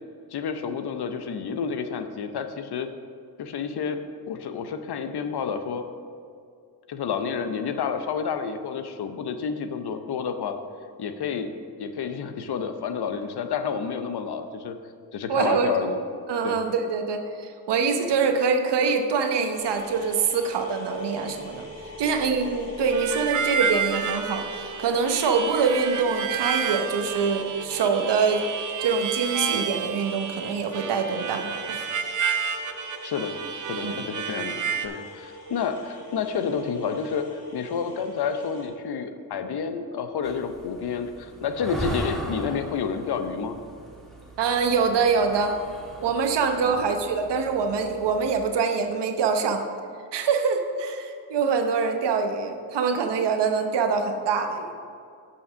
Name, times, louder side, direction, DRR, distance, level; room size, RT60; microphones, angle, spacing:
voice 1, 0.3-2.9 3.4-4.0 4.3-5.8 6.9-10.6 11.0-11.5 11.8-14.8 15.1-16.0 16.4-16.6 33.0-33.3 33.6-43.6 46.6-46.8, left 6 dB, 70° left, 8 dB, 0.7 m, -30 dB
voice 2, 15.3-15.7 16.3-21.6 22.0-28.4 28.8-31.8 33.8-34.0 44.4-45.6 46.0-49.6 50.1-54.7, right 5 dB, 90° right, 5 dB, 0.9 m, -24 dB
sound 1, 19.5-38.7, left 1 dB, 35° left, 2.2 m, -43 dB
Harmonica, 22.9-34.9, right 6 dB, 50° right, 0.6 m, -30 dB
sound 2, 40.2-48.4, equal, ahead, 1.5 m, -38 dB
6.9 x 5.9 x 6.2 m, 2.3 s
wide cardioid pair, 105°, 40 cm